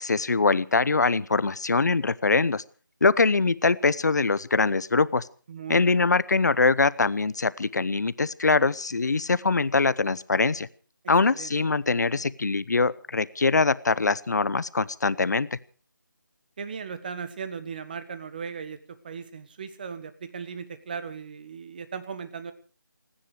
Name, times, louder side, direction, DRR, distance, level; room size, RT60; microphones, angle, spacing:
voice 1, 0.0-2.6 3.0-5.3 5.7-10.7 11.1-15.5, left 4 dB, 55° left, 18 dB, 0.9 m, -23 dB
voice 2, 5.5-6.0 11.2-11.5 16.6-22.5, right 6 dB, 25° right, 12 dB, 1.4 m, -37 dB
29.0 x 10.0 x 4.9 m, 0.39 s
figure-of-eight pair, 165°, 11 cm